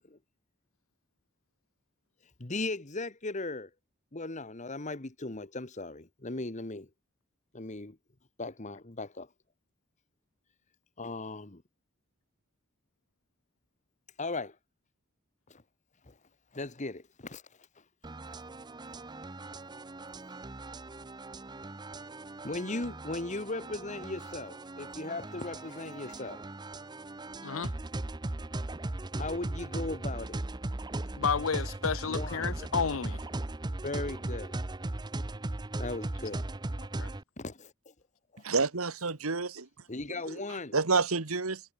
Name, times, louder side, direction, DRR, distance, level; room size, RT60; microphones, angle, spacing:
voice 1, 2.4-3.7 4.1-6.9 7.5-8.0 8.4-9.3 11.0-11.6 14.2-14.5 15.5-15.6 16.1-16.2 16.5-17.4 22.4-26.4 29.2-30.4 32.1-32.5 33.8-34.5 35.8-36.4 37.4-37.7 38.3-38.4 39.9-40.7, left 2 dB, 35° left, 1.4 m, -37 dB
sound 1, 18.0-37.2, right 2 dB, 20° right, 0.7 m, -38 dB
voice 2, 27.4-27.7 31.2-33.2 37.0-37.1, left 6 dB, 70° left, 0.7 m, -31 dB
voice 3, 38.4-39.7 40.3-40.4 40.7-41.6, right 4 dB, 85° right, 1.8 m, -29 dB
head